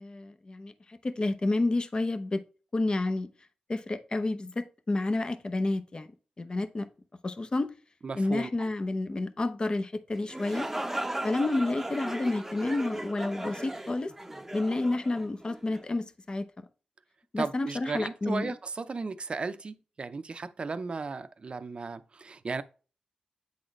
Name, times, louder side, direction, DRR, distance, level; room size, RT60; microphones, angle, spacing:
voice 1, 0.0-2.4 2.7-3.3 3.7-6.1 6.4-6.9 7.2-7.7 8.2-10.7 11.2-14.1 14.5-16.5 17.3-18.5, left 2 dB, 40° left, 0.7 m, -30 dB
voice 2, 8.0-8.7 17.4-22.6, right 4 dB, 50° right, 0.5 m, -35 dB
sound 1, 10.1-15.8, right 1 dB, 10° right, 0.7 m, -37 dB
8.7 x 3.9 x 3.1 m
cardioid pair, 65°, 2 cm